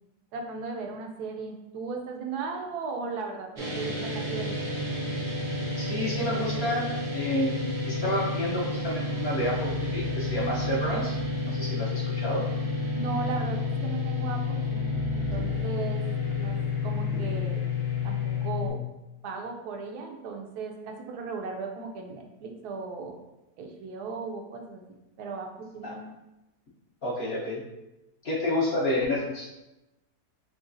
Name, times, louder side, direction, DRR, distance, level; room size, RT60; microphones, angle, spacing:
voice 1, 0.3-4.7 12.9-16.0 16.3-16.6 16.8-17.6 18.0-18.8 19.2-23.2 23.6-26.0, right 4 dB, 80° right, 2 dB, 1.1 m, -36 dB
sound 1, 3.6-18.7, left 3 dB, 50° right, 0.6 m, -30 dB
voice 2, 5.8-11.2 11.4-12.4 25.8-26.0 27.0-27.6 28.2-29.5, left 1 dB, 50° left, -6 dB, 0.8 m, -30 dB
sound 2, 8.3-18.5, right 2 dB, 75° left, 1.1 m, -45 dB
3.8 x 3.3 x 2.5 m, 0.95 s
omnidirectional pair, 1.7 m